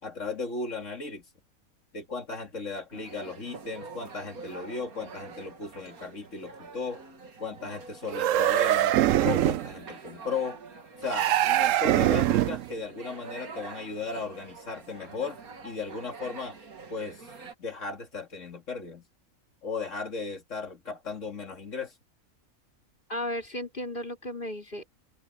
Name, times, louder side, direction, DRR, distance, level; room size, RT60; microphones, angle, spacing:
voice 1, 0.0-1.2 1.9-7.0 7.4-10.6 11.0-15.4 15.6-16.6 16.9-17.2 17.6-19.0 19.6-21.9, left 4 dB, 60° left, 3.0 m, -36 dB
sound 1, 2.9-17.5, right 4 dB, 85° right, 2.5 m, -46 dB
sound 2, 8.1-9.7 11.1-12.7, right 13 dB, 70° right, 0.9 m, -23 dB
voice 2, 23.1-24.9, left 1 dB, 35° left, 4.3 m, -34 dB
omnidirectional pair, 1.5 m